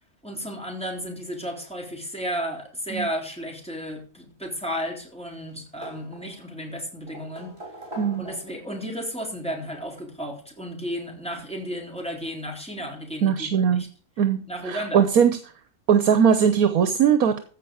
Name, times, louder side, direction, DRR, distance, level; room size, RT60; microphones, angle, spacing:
voice 1, 0.2-7.5 8.2-13.9 14.5-15.1, equal, 5° left, 0 dB, 3.7 m, -33 dB
sound 1, 4.5-5.2 5.4-6.6 7.1-8.7 9.9-10.0 11.6-11.7 12.0-12.1, right 1 dB, 40° right, 3.8 m, -42 dB
voice 2, 8.0-8.3 13.2-13.8 14.2-15.4 15.9-17.4, right 7 dB, 75° right, 10 dB, 1.4 m, -20 dB
15.0 x 5.3 x 7.0 m, 0.40 s
omnidirectional pair, 1.6 m